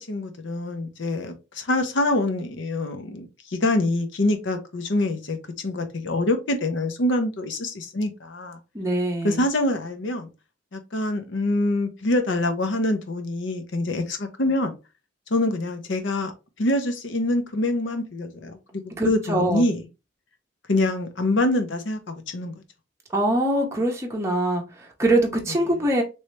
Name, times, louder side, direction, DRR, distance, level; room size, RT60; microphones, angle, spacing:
voice 1, 0.1-5.4 5.6-8.6 9.2-10.3 10.7-14.7 15.3-16.3 16.6-19.8 20.7-22.5, left 1 dB, 70° left, 0.8 m, -25 dB
voice 2, 8.7-9.4 19.0-19.6 23.1-26.0, right 1 dB, 15° right, 0.7 m, -23 dB
3.1 x 2.8 x 3.1 m
head